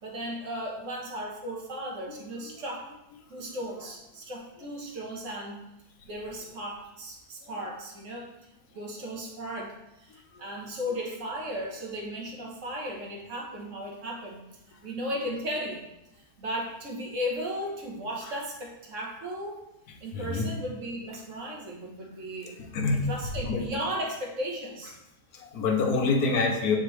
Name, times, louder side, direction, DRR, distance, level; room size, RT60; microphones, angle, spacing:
voice 1, 0.0-2.9 3.3-5.6 6.0-8.3 8.7-14.4 14.8-15.8 16.2-19.6 20.0-22.6 22.9-25.0, equal, 60° right, -1 dB, 1.4 m, -36 dB
voice 2, 2.1-2.5 9.0-9.1 10.3-10.4 20.1-20.5 22.7-23.1 23.4-23.7 25.3-26.8, left 4 dB, 85° left, 2 dB, 1.4 m, -27 dB
7.7 x 4.2 x 3.2 m, 0.88 s
omnidirectional pair, 1.6 m